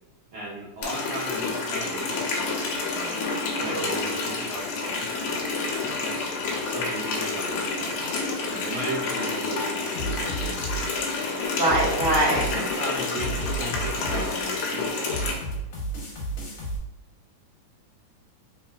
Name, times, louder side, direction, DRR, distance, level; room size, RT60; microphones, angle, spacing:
voice 1, 0.3-6.3 6.6-11.3 12.3-15.4, right 1 dB, 90° right, -7 dB, 1.1 m, -37 dB
Water tap faucet, 0.8-15.3, left 3 dB, 85° left, 1.3 m, -29 dB
voice 2, 3.0-3.9 11.6-12.4, right 1 dB, 60° right, -9 dB, 0.3 m, -25 dB
sound 1, 9.9-16.8, right 2 dB, 65° left, 1.4 m, -33 dB
4.3 x 3.1 x 2.2 m, 1.0 s
omnidirectional pair, 3.5 m